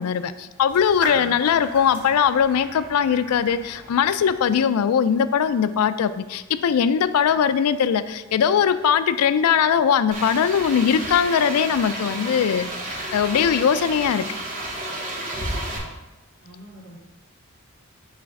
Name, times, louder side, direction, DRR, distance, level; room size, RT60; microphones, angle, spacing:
voice 1, 0.0-14.3, left 7 dB, 80° left, 13 dB, 0.3 m, -20 dB
sound 1, 0.7-4.7, right 1 dB, 10° right, 1.9 m, -38 dB
voice 2, 1.1-1.4 16.4-17.0, equal, 60° right, -5 dB, 2.0 m, -45 dB
sound 2, 10.1-15.8, right 1 dB, 40° right, 1.1 m, -31 dB
5.6 x 3.3 x 5.3 m, 1.1 s
head